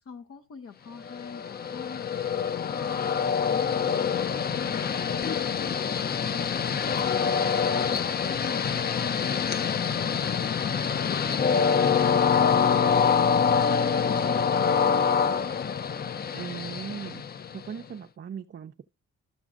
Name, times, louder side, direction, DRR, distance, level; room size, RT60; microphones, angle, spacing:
voice 1, 0.1-2.9 3.4-10.7 11.0-15.1, left 6 dB, 50° left, 0.8 m, -43 dB
Train, 1.1-17.8, left 6 dB, 35° left, 0.4 m, -25 dB
voice 2, 16.3-17.2 17.5-18.8, right 8 dB, 35° right, 0.5 m, -38 dB
12.5 x 6.1 x 2.5 m
cardioid pair, 90°, 30 cm